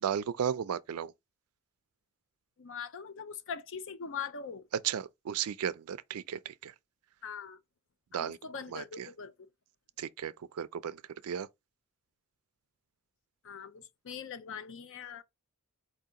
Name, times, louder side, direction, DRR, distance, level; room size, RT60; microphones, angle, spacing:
voice 1, 0.0-1.1 4.8-6.7 8.1-8.4 8.7-9.1 10.0-11.5, right 8 dB, 80° right, 0.4 m, -35 dB
voice 2, 2.6-4.7 7.2-7.6 8.1-9.5 13.4-15.2, left 6 dB, 60° left, 0.6 m, -42 dB
4.5 x 2.8 x 3.6 m
head